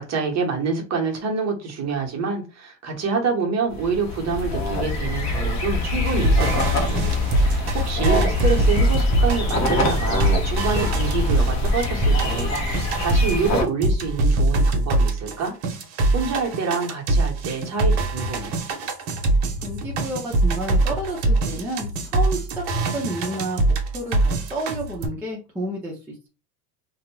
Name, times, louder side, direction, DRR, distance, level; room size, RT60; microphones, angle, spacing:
voice 1, 0.0-12.5 13.0-15.5 16.1-18.5, right 5 dB, 35° right, 1.0 m, -27 dB
sound 1, 3.7-13.6, left 2 dB, 35° left, 0.8 m, -24 dB
sound 2, 6.1-13.5 13.8-25.1, right 2 dB, 55° right, 1.0 m, -23 dB
voice 2, 19.6-22.6 22.9-26.0, right 1 dB, 5° right, 0.5 m, -30 dB
2.5 x 2.1 x 3.1 m
supercardioid pair, 125°, 50 cm